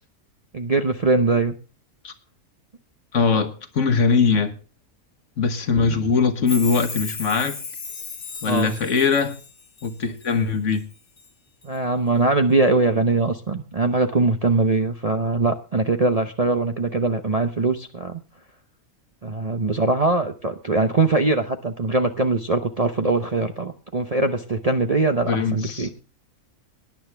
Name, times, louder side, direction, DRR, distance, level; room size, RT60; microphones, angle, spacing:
voice 1, 0.5-1.5 8.4-8.7 11.6-18.2 19.2-25.9, right 3 dB, 35° right, 5 dB, 0.7 m, -22 dB
voice 2, 3.1-4.5 5.4-7.6 8.4-9.3 9.8-10.8 25.2-25.9, left 5 dB, 55° left, 9 dB, 1.5 m, -21 dB
Chime, 6.5-10.4 10.7-11.3 11.6-11.7, left 4 dB, 40° left, 1.5 m, -35 dB
18.0 x 10.0 x 3.3 m, 0.34 s
omnidirectional pair, 1.5 m